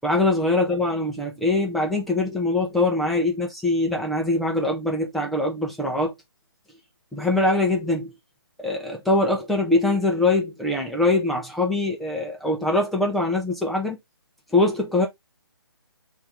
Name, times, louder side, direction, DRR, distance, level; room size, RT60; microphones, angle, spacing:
voice 1, 0.0-6.1 7.1-8.1 8.6-14.0 14.5-15.1, left 2 dB, ahead, 0.4 m, -23 dB
3.4 x 2.5 x 4.2 m
hypercardioid pair, 155°, 13 cm